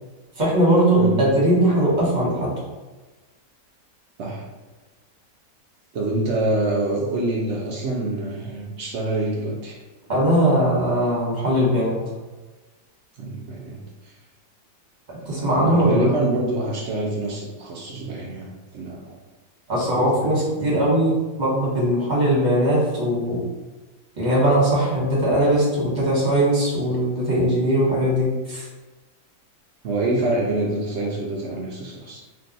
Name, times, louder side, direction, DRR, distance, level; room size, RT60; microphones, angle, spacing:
voice 1, 0.4-2.5 10.1-12.0 15.3-16.1 19.7-23.4 24.2-28.6, right 1 dB, 30° right, -6 dB, 1.0 m, -20 dB
voice 2, 1.0-1.3 4.2-4.4 5.9-9.8 13.2-13.8 14.0-14.1 15.2-19.0 19.9-20.1 29.8-32.2, right 2 dB, 75° right, -2 dB, 0.6 m, -26 dB
2.6 x 2.3 x 3.9 m, 1.2 s
omnidirectional pair, 1.7 m